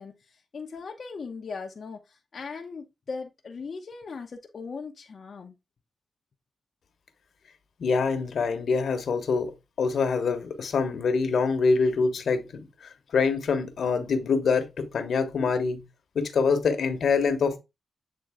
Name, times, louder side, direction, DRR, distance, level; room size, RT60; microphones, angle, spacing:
voice 1, 0.0-5.5, left 4 dB, 55° left, 0.9 m, -39 dB
voice 2, 7.8-9.5 9.8-12.7 13.1-15.8 16.1-17.6, left 5 dB, 75° left, 1.2 m, -25 dB
7.9 x 3.7 x 3.6 m
cardioid pair, 95°, 0 cm